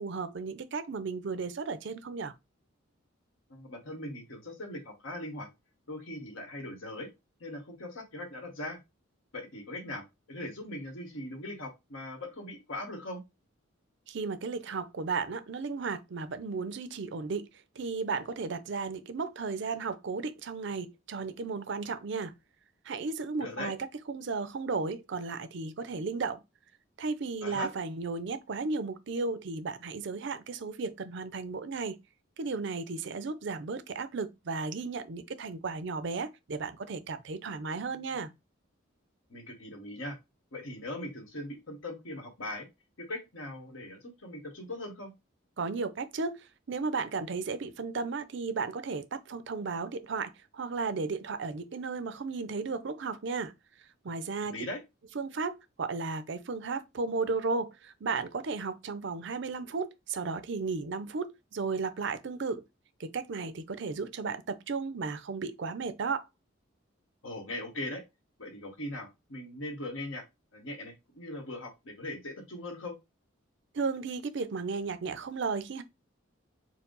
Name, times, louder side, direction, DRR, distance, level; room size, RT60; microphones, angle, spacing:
voice 1, 0.0-2.3 14.1-17.5 17.8-22.3 22.9-23.8 24.1-26.4 27.0-32.0 32.4-38.3 45.6-53.5 54.0-54.5 55.2-62.6 63.0-66.3 73.7-75.8, right 4 dB, 60° right, 0.5 m, -34 dB
voice 2, 3.5-5.5 5.9-7.1 7.4-8.8 9.3-13.2 23.4-23.7 27.4-27.7 39.3-40.2 40.5-42.7 43.0-45.1 54.4-54.8 67.2-68.0 68.4-70.2 70.5-73.0, left 1 dB, 75° left, 1.4 m, -40 dB
4.5 x 2.1 x 3.9 m
head